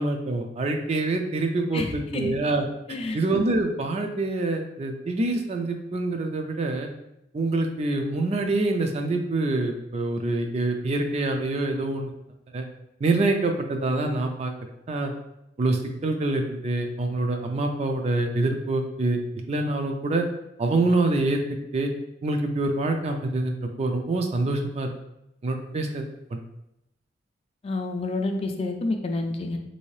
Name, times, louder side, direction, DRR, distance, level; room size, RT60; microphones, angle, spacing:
voice 1, 0.0-2.6 3.1-6.9 7.3-12.1 12.5-12.6 13.0-14.5 14.9-15.1 15.6-20.2 20.6-21.4 21.7-21.9 22.2-24.9 25.4-26.4, right 2 dB, 35° right, 4 dB, 0.4 m, -26 dB
voice 2, 1.7-2.3 2.9-3.2 27.6-29.6, left 2 dB, 35° left, 4 dB, 0.4 m, -29 dB
3.2 x 2.7 x 3.1 m, 0.84 s
head